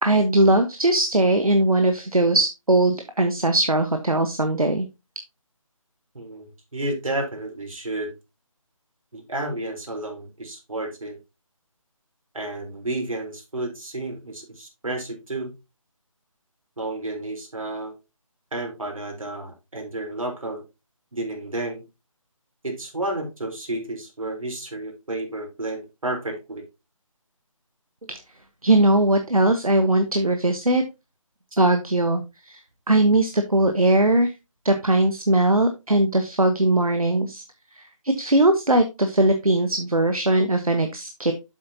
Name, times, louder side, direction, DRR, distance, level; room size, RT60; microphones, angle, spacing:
voice 1, 0.0-4.9 28.1-28.2 28.6-30.8 31.6-32.6 32.9-34.3 34.6-37.4 37.7-41.3, right 1 dB, 90° right, 7 dB, 1.3 m, -20 dB
voice 2, 6.1-8.1 9.1-11.2 12.3-15.5 16.8-17.9 18.5-20.6 21.1-21.8 22.6-26.7, right 2 dB, 70° right, 1 dB, 3.8 m, -31 dB
7.9 x 7.6 x 2.8 m, 0.25 s
figure-of-eight pair, 155°, 18 cm